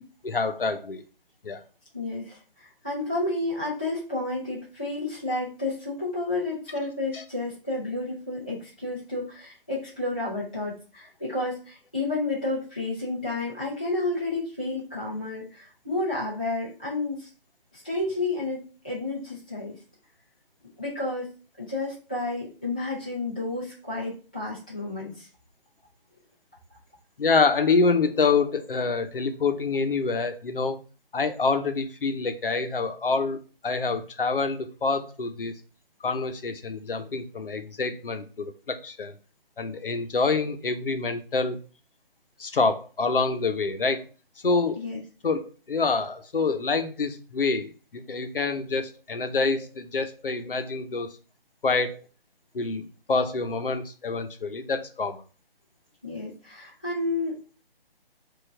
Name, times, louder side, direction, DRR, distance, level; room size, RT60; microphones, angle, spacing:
voice 1, 0.2-1.0 1.4-1.6 7.1-7.2 27.2-30.8 31.1-33.4 33.6-35.5 36.0-39.1 39.6-41.6 42.4-44.0 44.4-44.8 45.2-51.1 51.6-52.0 52.5-55.2, left 4 dB, 65° left, 8 dB, 0.8 m, -26 dB
voice 2, 1.9-17.3 17.7-19.7 20.8-21.3 21.6-25.3 44.8-45.0 56.0-57.4, left 2 dB, 10° left, -9 dB, 0.4 m, -31 dB
4.6 x 2.5 x 4.3 m, 0.36 s
figure-of-eight pair, 145°, 29 cm